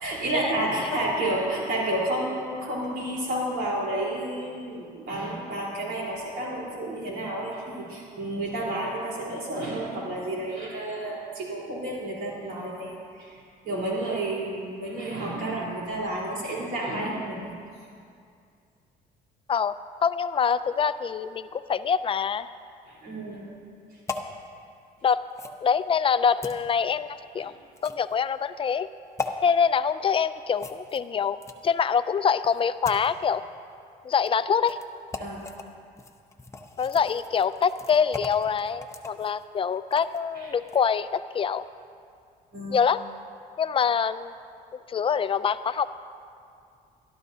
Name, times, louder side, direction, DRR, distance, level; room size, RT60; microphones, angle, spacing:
voice 1, 0.0-17.5 22.9-23.5 23.9-24.0 27.4-27.5 29.2-29.3 35.2-35.4 40.4-40.5 42.5-42.8, right 1 dB, 75° right, -4 dB, 3.9 m, -31 dB
voice 2, 20.0-22.5 25.0-25.2 25.6-27.5 27.8-28.9 29.4-33.4 34.0-34.8 36.8-41.6 42.7-43.0 43.6-44.3 44.9-45.9, left 6 dB, 30° left, 13 dB, 0.4 m, -25 dB
sound 1, 24.1-24.3 25.3-25.6 26.4-26.6 27.8-28.1 29.2-29.3 30.6-31.8 32.4-33.1 34.1-34.3 34.7-34.8 35.1-35.6 36.0-40.2 40.6-40.8, left 4 dB, 15° left, 0.8 m, -38 dB
22.5 x 12.5 x 2.8 m, 2.3 s
cardioid pair, 110°, 17 cm